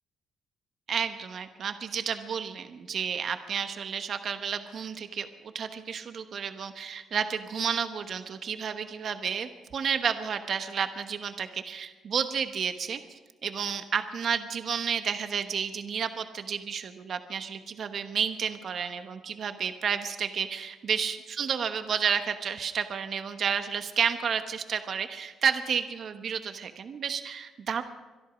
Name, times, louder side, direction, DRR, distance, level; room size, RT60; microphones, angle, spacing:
voice 1, 0.9-27.8, right 7 dB, 55° right, 8 dB, 1.1 m, -31 dB
25.0 x 11.0 x 5.1 m, 1.2 s
cardioid pair, 90°, 0 cm